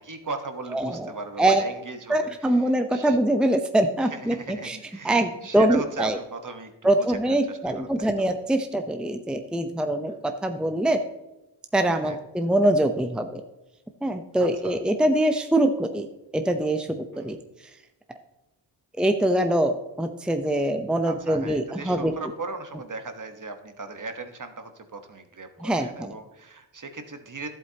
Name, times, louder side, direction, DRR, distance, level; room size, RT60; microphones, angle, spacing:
voice 1, 0.0-3.2 4.0-8.3 12.0-12.2 14.4-14.8 17.1-17.4 21.0-27.5, right 3 dB, 40° right, 7 dB, 1.3 m, -38 dB
voice 2, 0.7-1.7 2.1-4.8 5.0-6.2 6.8-11.0 11.7-13.4 14.0-16.1 16.3-17.4 19.0-22.1 25.6-26.1, right 1 dB, ahead, 6 dB, 0.7 m, -24 dB
11.5 x 7.9 x 2.9 m, 0.97 s
cardioid pair, 65°, 46 cm